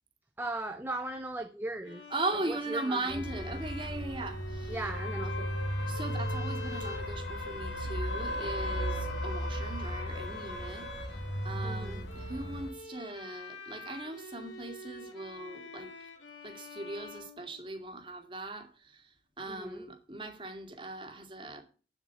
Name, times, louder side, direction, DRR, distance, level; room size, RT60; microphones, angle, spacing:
voice 1, 0.4-2.0 2.5-3.6 4.7-5.5 11.6-12.0 19.5-19.8, right 2 dB, 10° right, 0.7 m, -38 dB
Bowed string instrument, 1.8-17.9, left 2 dB, 85° left, 3.2 m, -47 dB
voice 2, 2.1-4.8 5.9-15.9 16.4-21.6, right 2 dB, 25° right, 2.2 m, -39 dB
sound 1, 3.1-12.7, equal, 60° left, 3.1 m, -35 dB
8.7 x 8.2 x 8.3 m
head